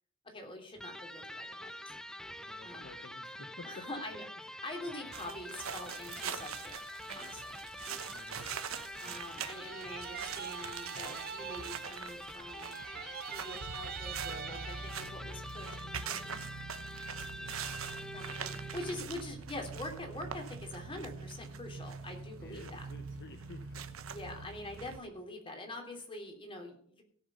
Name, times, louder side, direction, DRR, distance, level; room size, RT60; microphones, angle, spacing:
voice 1, 0.2-1.9 2.6-2.9 3.6-6.8 7.1-7.5 9.0-16.4 18.1-22.9 24.1-27.0, left 1 dB, 25° left, 2 dB, 3.1 m, -45 dB
Electric guitar, 0.8-19.1, left 1 dB, 5° left, 0.5 m, -46 dB
voice 2, 2.5-3.9 8.1-8.6 17.1-17.9 22.4-24.2, left 3 dB, 55° left, 8 dB, 0.9 m, -52 dB
sound 1, 5.1-25.0, right 6 dB, 75° right, 1.0 m, -43 dB
sound 2, 9.5-12.2 12.4-15.2, right 10 dB, 45° right, 0.4 m, -44 dB
17.0 x 6.5 x 5.5 m, 0.62 s
head